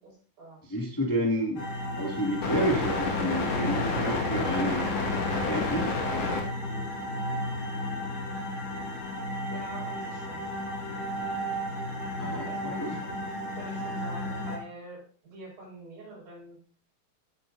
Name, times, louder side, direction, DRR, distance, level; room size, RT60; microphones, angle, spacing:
voice 1, 0.0-0.6 9.5-10.4 12.4-16.6, right 1 dB, 90° right, -3 dB, 7.7 m, -46 dB
voice 2, 0.6-1.6 2.0-4.9 5.5-5.9 12.2-13.0, equal, 10° left, -2 dB, 1.6 m, -30 dB
sound 1, 1.6-14.6, left 2 dB, 50° left, 2.8 m, -31 dB
17.0 x 9.3 x 2.7 m, 0.40 s
omnidirectional pair, 4.0 m